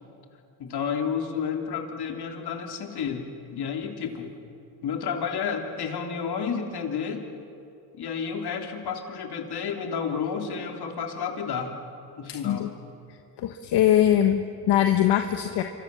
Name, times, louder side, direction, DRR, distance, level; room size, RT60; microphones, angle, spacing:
voice 1, 0.6-4.3 4.8-7.3 7.9-11.7 12.2-12.7, left 6 dB, 70° left, 3 dB, 3.4 m, -31 dB
voice 2, 12.3-12.7 13.4-15.6, left 11 dB, 85° left, 6 dB, 1.3 m, -22 dB
27.5 x 25.0 x 7.0 m, 2.7 s
cardioid pair, 80°, 40 cm